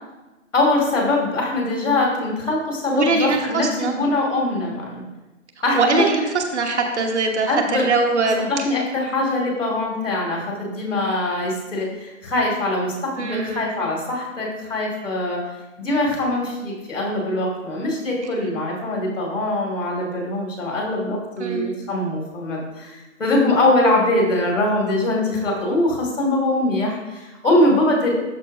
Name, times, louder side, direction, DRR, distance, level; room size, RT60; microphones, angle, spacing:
voice 1, 0.5-5.0 5.6-6.0 7.5-7.8 8.4-15.4 15.8-28.1, left 2 dB, 65° left, -2 dB, 2.4 m, -22 dB
voice 2, 2.9-3.9 5.7-8.6 13.2-13.8 21.4-21.7, right 3 dB, 55° right, 3 dB, 1.1 m, -22 dB
12.0 x 4.2 x 2.7 m, 1.1 s
hypercardioid pair, 160°, 40 cm